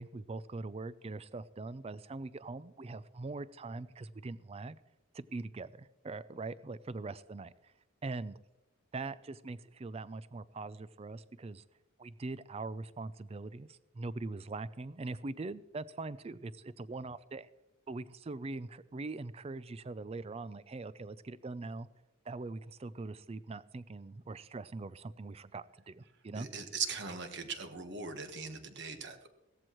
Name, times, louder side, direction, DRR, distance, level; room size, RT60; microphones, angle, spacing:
voice 1, 0.0-4.8 5.1-7.7 8.0-8.4 8.9-11.6 12.0-17.5 17.9-21.9 22.3-26.5, right 3 dB, 30° right, 17 dB, 0.4 m, -42 dB
voice 2, 26.4-29.3, right 5 dB, 55° right, 7 dB, 1.3 m, -39 dB
16.5 x 14.0 x 3.1 m, 0.98 s
head